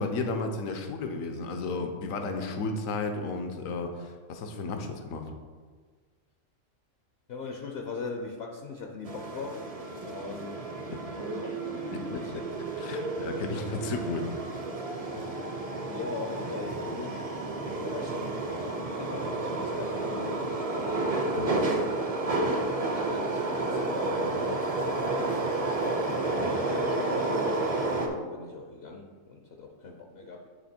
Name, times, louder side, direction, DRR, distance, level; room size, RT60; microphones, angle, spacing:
voice 1, 0.0-5.3 10.9-11.0 11.9-12.1 12.8-14.3 21.4-21.6, left 3 dB, 75° left, 5 dB, 1.1 m, -33 dB
voice 2, 7.3-10.7 11.2-12.3 13.9-14.0 15.1-15.4 15.9-17.3 17.8-18.5 19.0-20.7 22.8-25.6 26.4-30.5, left 4 dB, 55° left, 1 dB, 0.8 m, -40 dB
sound 1, 9.0-28.1, right 2 dB, 35° right, 0.6 m, -31 dB
9.5 x 3.4 x 4.3 m, 1.5 s
omnidirectional pair, 1.4 m